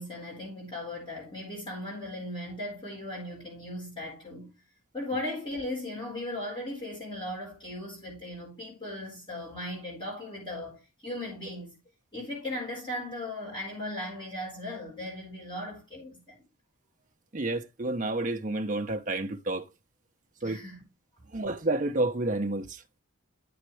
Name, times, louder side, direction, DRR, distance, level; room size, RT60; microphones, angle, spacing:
voice 1, 0.0-4.5 4.9-11.7 12.1-16.4 20.4-20.8, left 1 dB, 20° left, 4.3 m, -37 dB
voice 2, 17.3-19.6 20.4-20.6 21.3-22.8, right 2 dB, 35° right, 0.7 m, -30 dB
10.0 x 7.2 x 3.2 m
head